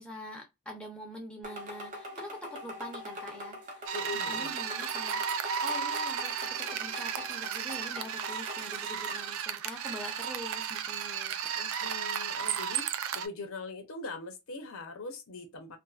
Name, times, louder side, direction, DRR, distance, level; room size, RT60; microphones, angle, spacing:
voice 1, 0.0-3.8 4.3-5.3 5.6-11.9, equal, 5° left, 0.6 m, -44 dB
sound 1, 1.4-9.3, left 1 dB, 35° right, 0.8 m, -43 dB
voice 2, 3.9-4.5 11.6-15.8, left 3 dB, 65° left, 0.7 m, -41 dB
sound 2, 3.9-13.3, right 7 dB, 65° right, 0.4 m, -34 dB
2.6 x 2.4 x 2.3 m
head